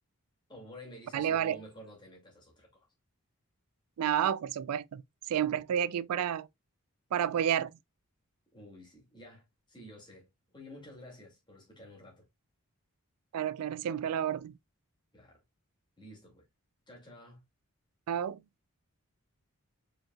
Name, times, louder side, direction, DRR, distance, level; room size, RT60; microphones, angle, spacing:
voice 1, 0.5-2.9 8.5-10.3 10.5-12.3 15.1-15.4 16.0-16.5 16.9-17.4, equal, 20° left, 2.3 m, -51 dB
voice 2, 1.1-1.6 4.0-5.0 5.3-6.5 7.1-7.7 13.3-14.5 18.1-18.4, right 9 dB, 90° right, 0.3 m, -30 dB
5.0 x 4.4 x 2.3 m
head